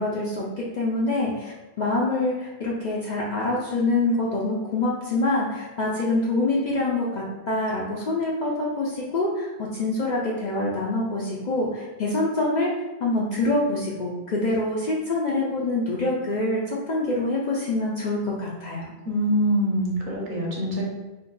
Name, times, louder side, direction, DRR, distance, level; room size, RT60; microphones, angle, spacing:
voice 1, 0.0-1.5 1.8-12.7 13.0-18.9, left 2 dB, 55° left, -4 dB, 0.5 m, -25 dB
voice 2, 19.0-20.8, equal, 55° right, -3 dB, 0.8 m, -24 dB
2.6 x 2.2 x 3.7 m, 1.1 s
omnidirectional pair, 1.1 m